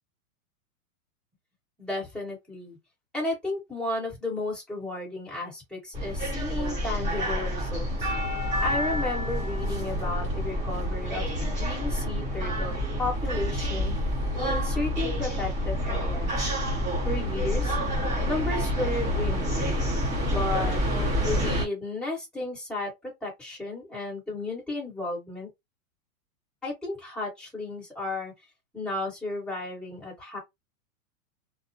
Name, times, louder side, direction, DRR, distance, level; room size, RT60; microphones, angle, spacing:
voice 1, 1.8-2.8 3.1-8.1 8.6-14.0 14.3-16.5 17.0-17.8 18.2-19.9 20.3-20.8 21.2-25.5 26.6-28.3 28.7-30.4, left 2 dB, ahead, 1.3 m, -33 dB
sound 1, 5.9-21.6, equal, 15° right, 0.8 m, -28 dB
2.4 x 2.1 x 2.6 m
supercardioid pair, 160°, 45 cm